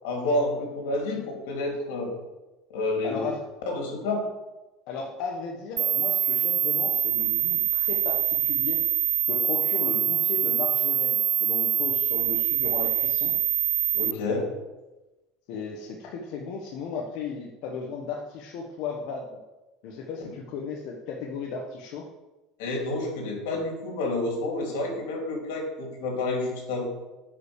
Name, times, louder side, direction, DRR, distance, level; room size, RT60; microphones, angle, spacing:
voice 1, 0.0-2.1 2.7-3.2 3.7-4.2 13.9-14.5 22.6-26.8, left 2 dB, 85° left, 0 dB, 3.5 m, -29 dB
voice 2, 3.0-3.4 4.9-8.8 9.3-13.3 15.5-19.3 19.8-22.0, left 5 dB, 60° left, 0 dB, 1.3 m, -35 dB
sound 1, 5.8-14.1, right 10 dB, 30° right, 0.4 m, -24 dB
9.5 x 5.5 x 6.5 m, 1.1 s
cardioid pair, 150°, 0 cm